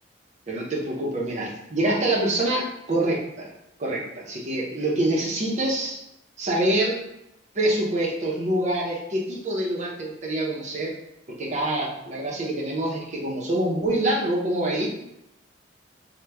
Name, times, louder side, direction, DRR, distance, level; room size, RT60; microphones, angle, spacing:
voice 1, 0.5-3.5 3.8-6.0 6.4-7.0 7.5-10.9 11.3-14.9, right 1 dB, 40° right, -3 dB, 0.7 m, -25 dB
2.9 x 2.2 x 3.3 m, 0.83 s
head